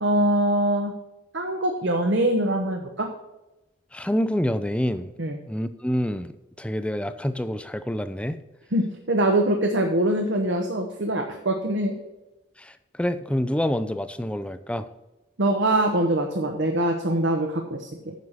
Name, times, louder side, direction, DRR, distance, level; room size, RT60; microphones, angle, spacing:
voice 1, 0.0-0.9 1.3-3.1 5.2-5.4 8.7-11.9 15.4-18.1, right 1 dB, 70° right, 3 dB, 1.1 m, -23 dB
voice 2, 3.9-5.1 5.5-8.4 12.6-12.7 13.0-14.9, equal, 5° left, 11 dB, 0.5 m, -27 dB
9.5 x 6.6 x 5.6 m, 1.0 s
head